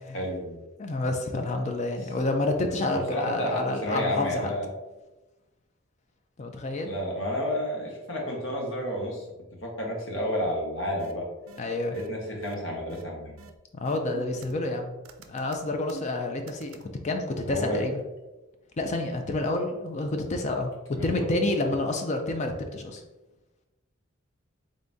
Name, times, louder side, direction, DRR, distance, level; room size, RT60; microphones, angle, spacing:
voice 1, 0.1-0.6 2.9-4.7 6.8-9.2 9.6-11.3 11.9-13.4 17.4-17.8 20.9-21.3, left 1 dB, 70° left, -1 dB, 1.1 m, -31 dB
voice 2, 0.8-4.5 6.4-6.9 11.6-12.0 13.7-15.0 15.3-16.8 17.0-18.0 18.8-23.0, left 2 dB, 35° left, 4 dB, 0.4 m, -29 dB
sound 1, 11.0-11.1 11.5-11.6 11.9-12.1 12.4-12.5 12.9-13.0 13.4-13.5 13.8-14.7 15.0-16.8, right 4 dB, 80° right, 0.4 m, -43 dB
3.7 x 3.5 x 2.6 m, 1.1 s
head